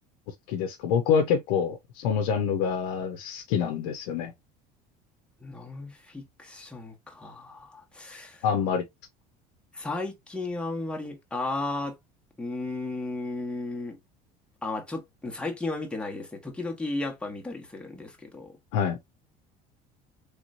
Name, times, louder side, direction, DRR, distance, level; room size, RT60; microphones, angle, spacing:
voice 1, 0.5-4.3 8.4-8.8 18.7-19.0, left 7 dB, 85° left, 0.6 m, -26 dB
voice 2, 5.4-8.4 9.7-12.0 12.4-14.0 14.6-18.6, left 2 dB, 5° left, 1.0 m, -34 dB
3.2 x 3.0 x 2.5 m
supercardioid pair, 105°, 19 cm